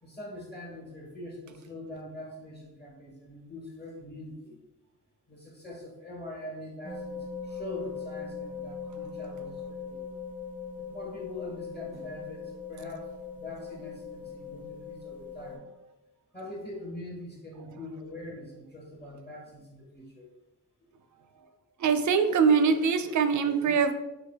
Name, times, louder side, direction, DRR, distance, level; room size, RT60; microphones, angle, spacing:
voice 1, 0.0-4.6 5.3-10.0 10.8-15.6 16.3-20.3, left 1 dB, 25° left, -2 dB, 1.4 m, -43 dB
sound 1, 6.8-15.6, left 5 dB, 5° left, 1.0 m, -40 dB
voice 2, 21.8-23.9, right 5 dB, 50° right, 10 dB, 0.4 m, -23 dB
3.2 x 2.3 x 3.5 m, 0.99 s
cardioid pair, 50°, 38 cm